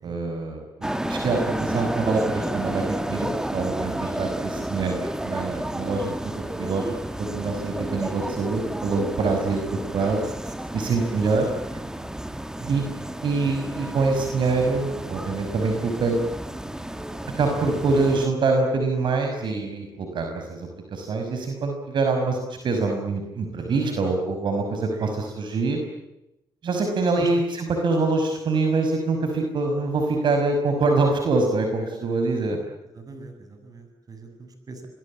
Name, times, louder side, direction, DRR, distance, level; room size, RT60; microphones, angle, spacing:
voice 1, 0.0-10.2 10.7-11.5 12.7-12.8 13.2-16.4 17.4-22.4 22.6-25.8 26.6-32.6, right 3 dB, 65° right, 4 dB, 5.8 m, -25 dB
sound 1, 0.8-18.3, right 1 dB, 5° right, 2.0 m, -31 dB
voice 2, 11.4-11.8 12.6-13.1 17.7-17.8 23.6-24.0 24.9-25.1 27.2-27.3 32.9-34.9, right 5 dB, 45° right, 8 dB, 7.6 m, -40 dB
28.5 x 22.0 x 8.7 m, 0.89 s
cardioid pair, 95°, 8 cm